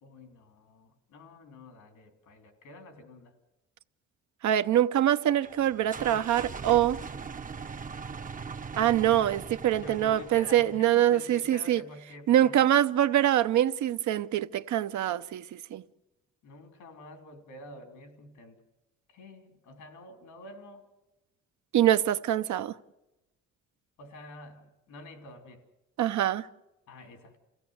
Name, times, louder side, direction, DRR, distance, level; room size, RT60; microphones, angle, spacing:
voice 1, 0.0-3.3 9.8-12.6 16.4-18.6 19.1-20.9 24.0-25.6 26.9-27.4, left 1 dB, 85° left, 3.3 m, -48 dB
voice 2, 4.4-7.0 8.8-11.8 12.3-15.8 21.7-22.7 26.0-26.5, right 12 dB, 70° right, 0.8 m, -24 dB
sound 1, 5.4-11.0, right 5 dB, 25° right, 0.7 m, -41 dB
28.0 x 16.0 x 7.9 m
cardioid pair, 90°, 30 cm